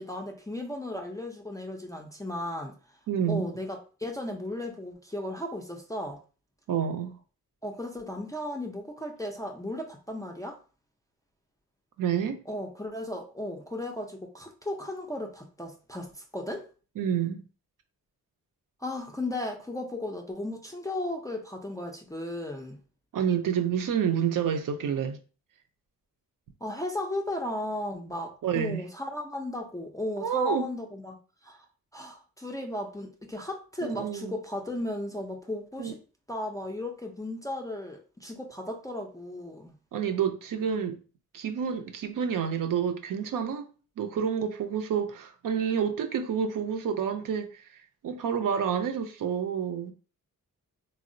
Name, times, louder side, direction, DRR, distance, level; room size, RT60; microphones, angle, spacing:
voice 1, 0.0-2.8 3.3-6.2 7.6-10.6 12.5-16.6 18.8-22.8 26.6-31.2 31.4-31.6 31.9-36.0 36.3-39.7, left 1 dB, 10° left, 0.3 m, -35 dB
voice 2, 3.1-3.5 6.7-7.2 12.0-12.4 17.0-17.4 23.1-25.2 28.4-28.8 30.2-30.6 33.8-34.3 35.8-35.9 39.9-41.0 41.3-43.6 44.0-49.9, right 8 dB, 65° right, 0.5 m, -29 dB
3.5 x 2.0 x 2.5 m
wide cardioid pair, 110°, 36 cm